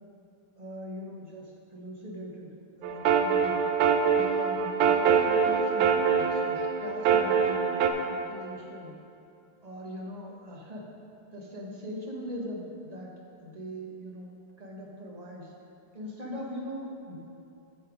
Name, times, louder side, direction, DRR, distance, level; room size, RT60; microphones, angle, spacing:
voice 1, 0.6-2.5 2.8-3.6 4.1-9.0 9.6-10.8 11.3-13.1 13.4-15.5 15.9-17.2, equal, 30° right, -2 dB, 0.8 m, -41 dB
sound 1, 2.8-7.9, right 6 dB, 75° right, 1.4 m, -24 dB
10.0 x 6.6 x 5.0 m, 2.7 s
omnidirectional pair, 2.3 m